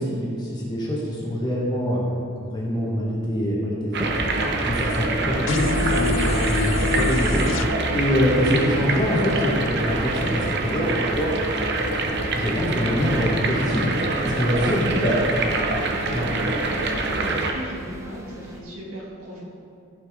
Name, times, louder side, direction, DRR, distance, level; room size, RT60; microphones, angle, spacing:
voice 1, 0.0-2.0 2.4-4.1 4.6-7.5 7.9-11.3 12.3-13.9 14.2-15.1 16.1-16.2, equal, 20° left, -5 dB, 1.6 m, -24 dB
sound 1, 3.9-17.5, right 2 dB, 50° right, 0.8 m, -25 dB
sound 2, 4.0-18.6, equal, 15° right, 0.8 m, -37 dB
sound 3, 5.5-7.7, left 3 dB, 55° left, 0.5 m, -25 dB
voice 2, 15.7-19.4, right 1 dB, 75° right, -5 dB, 2.4 m, -38 dB
15.0 x 5.7 x 3.7 m, 2.5 s
head